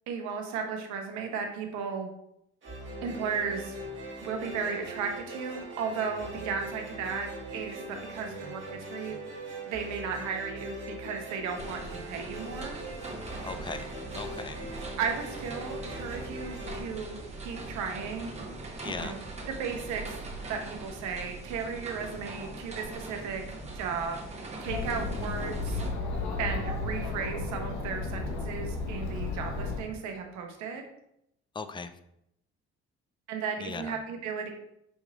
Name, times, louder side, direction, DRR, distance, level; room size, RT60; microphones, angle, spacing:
voice 1, 0.1-2.1 3.0-3.8 4.2-7.8 8.1-9.2 9.6-12.8 15.0-18.3 18.9-19.2 19.5-20.2 20.5-23.4 23.7-24.2 24.6-25.8 26.4-30.8 33.3-34.5, right 6 dB, 75° right, 4 dB, 0.8 m, -35 dB
sound 1, 2.6-17.9, right 1 dB, 40° right, 1.5 m, -41 dB
sound 2, 11.5-25.9, right 2 dB, 20° right, 1.0 m, -41 dB
voice 2, 13.4-13.9 14.1-14.6 18.8-19.2 25.2-25.3 31.5-31.9 33.6-34.0, left 4 dB, 15° left, 9 dB, 0.3 m, -38 dB
Chatter, 24.7-29.8, left 3 dB, 70° left, 0.9 m, -33 dB
5.3 x 3.0 x 2.4 m, 0.78 s
supercardioid pair, 65°, 29 cm